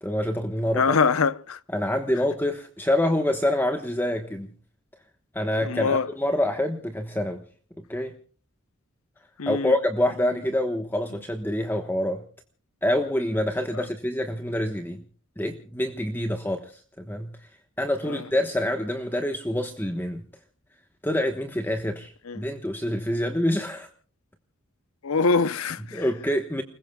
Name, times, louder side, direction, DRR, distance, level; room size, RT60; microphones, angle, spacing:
voice 1, 0.0-1.0 1.7-4.5 5.3-7.4 7.9-8.1 9.5-12.2 12.8-15.0 15.4-17.4 17.8-20.2 21.0-23.9 25.9-26.6, left 1 dB, 10° left, 1.2 m, -26 dB
voice 2, 0.8-1.6 5.6-6.1 9.4-9.7 13.7-13.8 18.0-18.2 22.3-22.4 25.0-26.1, left 4 dB, 85° left, 0.8 m, -24 dB
30.0 x 21.0 x 2.3 m
head